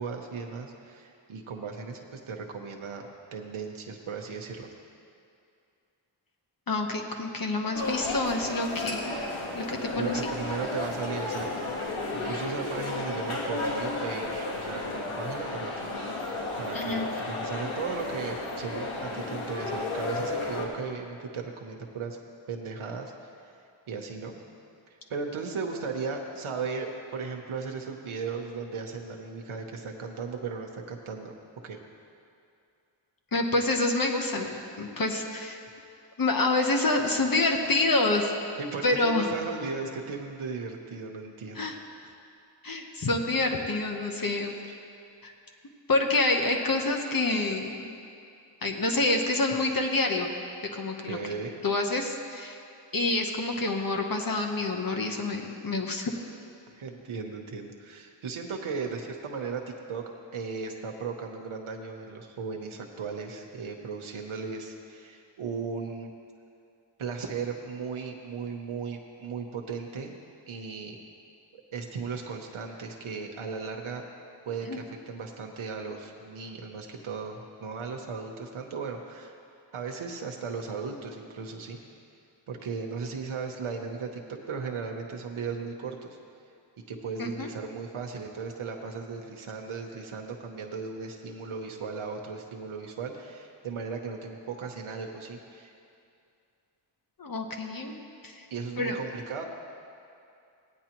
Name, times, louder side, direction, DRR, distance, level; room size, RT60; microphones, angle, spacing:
voice 1, 0.0-4.7 9.9-15.9 16.2-22.2 22.5-23.5 23.9-24.4 24.9-31.3 31.6-31.8 38.6-41.7 51.1-51.6 56.7-59.6 59.9-60.0 60.3-66.1 67.0-70.1 70.5-71.0 71.5-74.0 74.4-79.3 79.7-81.8 82.5-86.2 86.9-95.7 98.5-99.4, right 5 dB, 85° right, 2 dB, 0.9 m, -36 dB
voice 2, 6.7-9.1 9.5-10.2 16.7-17.1 33.3-35.6 36.2-38.3 38.8-39.3 41.5-41.8 42.6-44.5 45.2-45.3 45.9-47.9 48.6-50.3 50.7-51.2 51.6-52.6 52.9-56.2 74.7-74.8 87.2-87.5 97.2-97.9 98.2-98.5 98.8-99.0, left 2 dB, 45° left, 2 dB, 0.9 m, -27 dB
sound 1, 7.7-20.7, left 2 dB, 85° left, 1.5 m, -33 dB
16.5 x 9.7 x 3.0 m, 2.5 s
wide cardioid pair, 80°, 48 cm